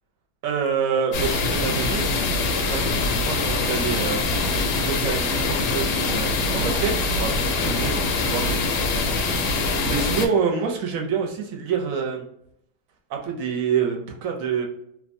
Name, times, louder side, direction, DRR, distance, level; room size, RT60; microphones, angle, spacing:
voice 1, 0.4-2.1 2.4-4.2 4.8-8.4 9.8-12.3 13.1-14.7, right 6 dB, 65° right, 2 dB, 1.0 m, -27 dB
sound 1, 1.1-10.3, left 3 dB, 90° left, 1.2 m, -23 dB
2.9 x 2.2 x 2.5 m, 0.74 s
omnidirectional pair, 1.7 m